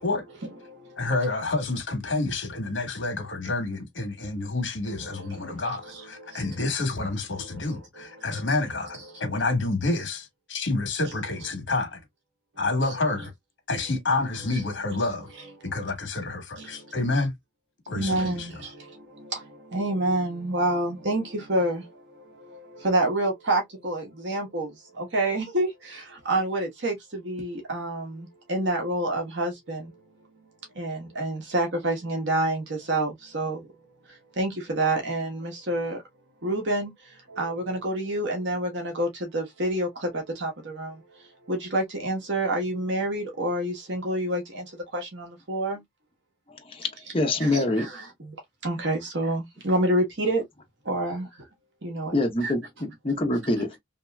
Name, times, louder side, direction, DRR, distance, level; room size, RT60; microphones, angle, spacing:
voice 1, 0.4-1.1 4.9-6.6 7.3-8.5 9.1-9.3 14.5-14.6 16.6-16.9 17.9-30.0 30.7-33.7 34.1-36.0 36.4-45.8 47.4-48.4 48.6-50.4 50.8-51.5 51.8-52.1 52.4-52.5, right 1 dB, 65° right, 1.1 m, -29 dB
voice 2, 1.0-12.0 12.6-13.3 13.7-15.3 15.6-17.3 17.9-18.5, left 3 dB, 70° left, 1.3 m, -28 dB
voice 3, 46.5-47.9 52.1-53.8, left 2 dB, 25° left, 0.9 m, -26 dB
3.0 x 2.9 x 2.2 m
head